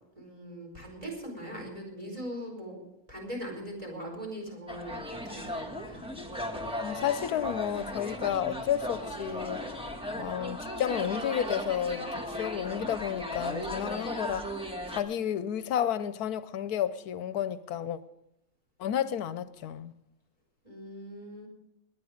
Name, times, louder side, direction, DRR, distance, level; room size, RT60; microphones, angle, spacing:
voice 1, 0.1-2.8 3.1-6.0 20.6-21.5, equal, 25° right, 5.0 m, -41 dB
sound 1, 4.7-15.0, left 1 dB, 5° right, 1.4 m, -36 dB
voice 2, 6.8-9.6 10.1-14.5 14.9-18.0 18.8-19.9, left 10 dB, 85° left, 1.2 m, -31 dB
21.0 x 9.7 x 5.0 m
omnidirectional pair, 1.6 m